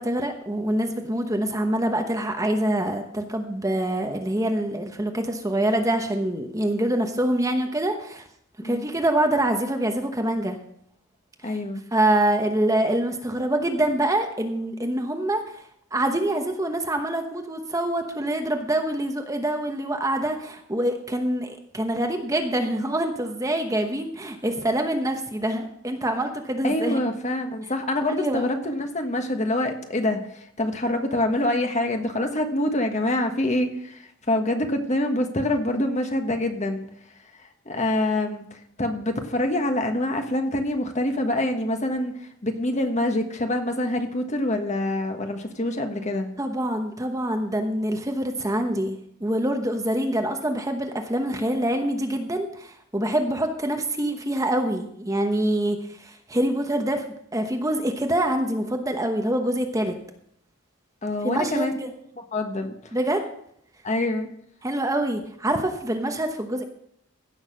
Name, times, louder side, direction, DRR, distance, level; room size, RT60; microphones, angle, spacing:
voice 1, 0.0-8.3 8.6-10.6 11.4-11.6 11.9-15.6 15.9-27.0 28.2-28.5 46.4-57.0 57.3-59.9 61.2-61.9 62.9-63.3 64.6-66.6, right 1 dB, 15° right, 4 dB, 1.0 m, -25 dB
voice 2, 11.4-11.8 26.6-36.9 37.4-46.3 61.0-61.7 62.3-62.9 63.8-64.3, left 1 dB, 35° left, 5 dB, 1.4 m, -26 dB
16.0 x 6.4 x 6.3 m, 0.70 s
head